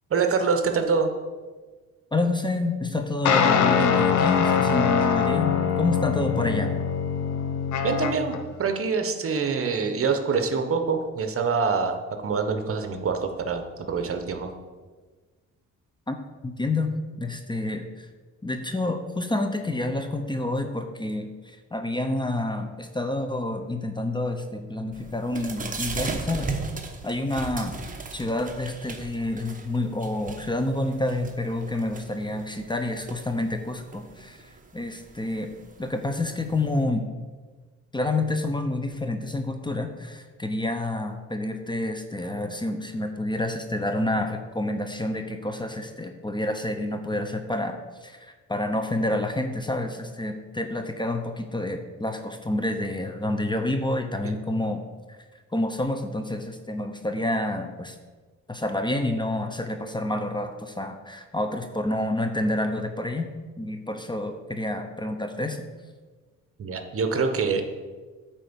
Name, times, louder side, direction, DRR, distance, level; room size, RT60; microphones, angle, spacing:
voice 1, 0.1-1.1 7.8-14.5 54.2-54.3 66.6-67.6, right 5 dB, 45° right, 6 dB, 1.1 m, -25 dB
voice 2, 2.1-6.7 16.1-16.2 16.4-18.1 18.4-26.5 27.0-27.7 28.1-35.5 35.8-37.0 37.9-54.8 55.1-55.2 55.5-58.0 58.5-63.3 63.6-65.6, left 2 dB, 15° left, 6 dB, 0.8 m, -28 dB
sound 1, 3.2-8.4, left 7 dB, 75° left, 0.8 m, -23 dB
sound 2, 24.9-36.8, right 4 dB, 25° right, 1.1 m, -38 dB
9.0 x 4.5 x 7.1 m, 1.4 s
cardioid pair, 90°, 30 cm